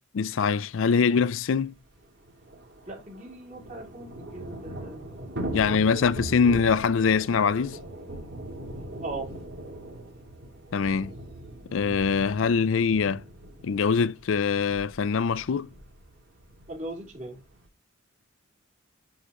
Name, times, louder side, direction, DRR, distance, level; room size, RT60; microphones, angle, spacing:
voice 1, 0.1-1.7 5.5-7.8 10.7-11.1 11.7-13.2 13.6-15.7, left 5 dB, 80° left, 0.4 m, -23 dB
Thunder / Rain, 1.1-1.2 1.4-1.5 1.8-17.7, right 1 dB, 60° right, 3.8 m, -41 dB
voice 2, 2.9-6.2 9.0-9.3 16.7-17.4, right 2 dB, 40° right, 3.5 m, -39 dB
10.5 x 5.0 x 4.2 m
head